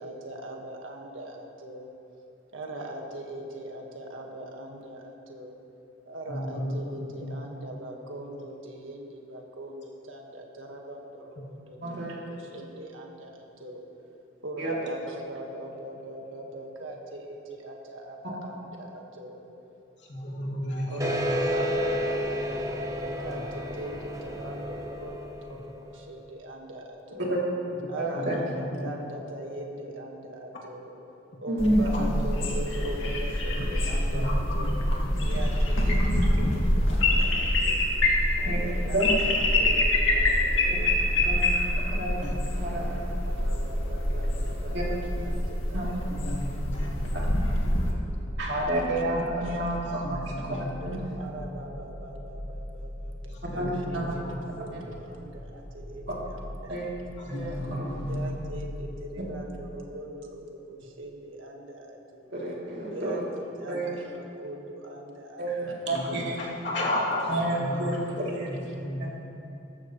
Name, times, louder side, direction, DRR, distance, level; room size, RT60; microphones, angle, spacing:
voice 1, 0.0-1.9 2.5-5.6 6.1-13.8 14.4-19.5 20.9-27.3 27.9-30.9 31.4-34.8 35.2-37.8 38.4-41.4 41.9-42.2 42.8-42.9 43.2-45.9 46.2-48.7 49.4-49.7 51.2-54.2 54.6-57.2 58.1-62.3 62.9-63.2 63.6-66.3 66.7-67.4 68.7-68.8, right 1 dB, 90° right, 0 dB, 1.7 m, -41 dB
voice 2, 6.3-7.2 20.1-21.0 28.1-28.2 28.6-28.9 31.9-32.1 34.1-35.0 42.2-42.3 46.1-46.9 50.0-50.2 50.6-50.7 51.4-51.5 53.5-54.3 57.3-58.2 65.9-67.9 68.5-68.6 68.8-69.1, left 1 dB, 65° left, -5 dB, 2.7 m, -33 dB
voice 3, 11.8-12.1 14.6-14.7 20.9-21.0 27.2-27.3 28.0-28.3 31.5-31.9 38.4-38.6 38.9-39.1 40.7-40.8 41.2-41.4 42.0-42.1 42.5-43.0 44.7-44.8 45.7-45.9 47.1-47.2 48.4-51.2 53.5-54.0 56.7-56.8 57.3-58.3 62.3-63.2 63.7-63.9 65.4-66.4 67.3-68.6 69.0-69.1, right 1 dB, 60° right, -4 dB, 3.0 m, -30 dB
sound 1, 21.0-26.1, equal, 15° right, 0.8 m, -31 dB
sound 2, 31.6-47.9, left 1 dB, 85° left, 2.1 m, -26 dB
sound 3, 43.7-59.8, equal, 30° left, 0.9 m, -42 dB
18.0 x 14.0 x 3.2 m, 2.8 s
head